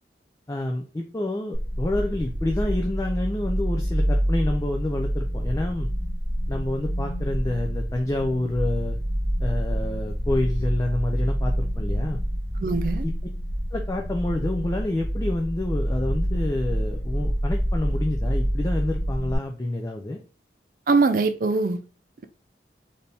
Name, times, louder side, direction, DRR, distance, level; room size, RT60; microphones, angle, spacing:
voice 1, 0.5-5.9 6.5-9.0 9.4-12.2 13.0-13.1 13.7-20.2, left 1 dB, 20° left, 0.4 m, -28 dB
sound 1, 1.5-19.3, equal, 50° left, 0.9 m, -27 dB
voice 2, 12.6-13.1 20.9-21.8, right 3 dB, 50° right, 0.4 m, -22 dB
4.3 x 2.7 x 3.3 m
head